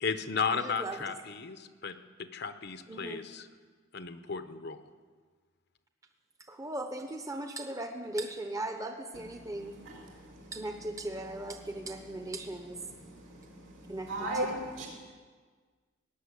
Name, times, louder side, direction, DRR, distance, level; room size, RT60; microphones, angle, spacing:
voice 1, 0.0-3.5 3.9-4.8, left 5 dB, 55° left, 10 dB, 0.9 m, -34 dB
voice 2, 0.5-1.1 2.9-3.2 6.5-9.8 10.5-12.8 13.9-14.5, right 1 dB, 15° right, 5 dB, 0.9 m, -38 dB
voice 3, 13.8-14.9, right 1 dB, 80° right, 0 dB, 5.1 m, -35 dB
18.5 x 7.6 x 9.8 m, 1.6 s
head